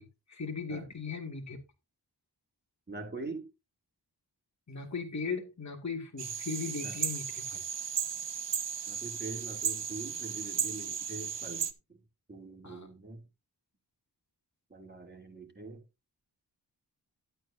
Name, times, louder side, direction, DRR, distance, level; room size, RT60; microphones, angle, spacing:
voice 1, 0.0-1.6 4.7-7.6 12.6-12.9, left 4 dB, 40° left, 2.3 m, -38 dB
voice 2, 2.9-3.5 6.8-7.0 8.9-12.0 12.3-13.2 14.7-15.8, right 3 dB, 25° right, 2.9 m, -43 dB
sound 1, 6.2-11.7, right 7 dB, 80° right, 1.1 m, -35 dB
12.5 x 9.0 x 2.7 m
wide cardioid pair, 55°, 42 cm